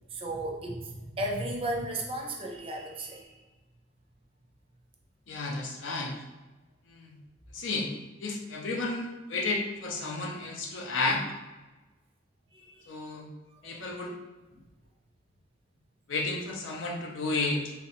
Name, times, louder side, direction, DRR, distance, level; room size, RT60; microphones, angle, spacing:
voice 1, 0.1-3.4 12.5-12.9 13.5-13.8 14.5-14.6, right 1 dB, 30° right, 1 dB, 0.5 m, -35 dB
voice 2, 5.3-6.2 6.9-7.2 7.5-7.9 8.2-11.2 12.9-13.3 13.6-14.1 16.1-17.7, left 3 dB, 85° left, 2 dB, 0.6 m, -32 dB
3.2 x 2.8 x 2.9 m, 1.2 s
head